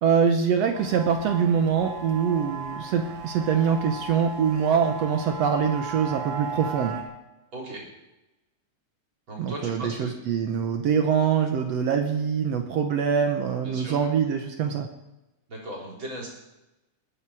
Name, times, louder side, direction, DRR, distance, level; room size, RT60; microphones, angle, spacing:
voice 1, 0.0-7.0 9.4-14.9, right 7 dB, 65° right, 5 dB, 2.0 m, -24 dB
sound 1, 0.7-7.0, right 4 dB, 85° right, 3.5 m, -36 dB
voice 2, 9.3-10.1 13.6-14.1 15.5-16.3, right 1 dB, 40° right, -2 dB, 4.5 m, -37 dB
21.0 x 9.3 x 4.8 m, 0.96 s
omnidirectional pair, 3.3 m